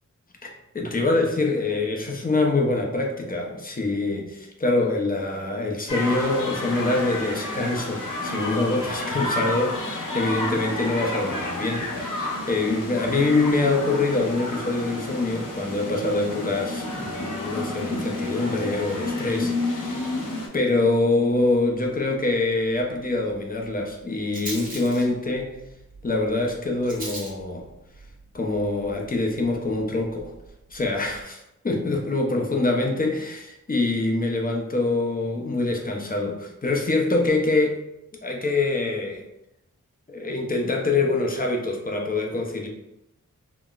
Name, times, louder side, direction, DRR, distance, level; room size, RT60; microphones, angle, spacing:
voice 1, 0.4-20.0 20.5-25.6 26.0-27.7 28.3-30.3 30.7-31.4 31.6-37.8 38.2-39.2 40.1-42.7, left 2 dB, 30° left, 1 dB, 0.5 m, -25 dB
sound 1, 5.9-20.5, left 2 dB, 75° left, 0.7 m, -30 dB
Rattle, 23.1-31.2, right 1 dB, 25° right, 0.9 m, -43 dB
3.8 x 2.0 x 2.3 m, 0.87 s
wide cardioid pair, 85°, 32 cm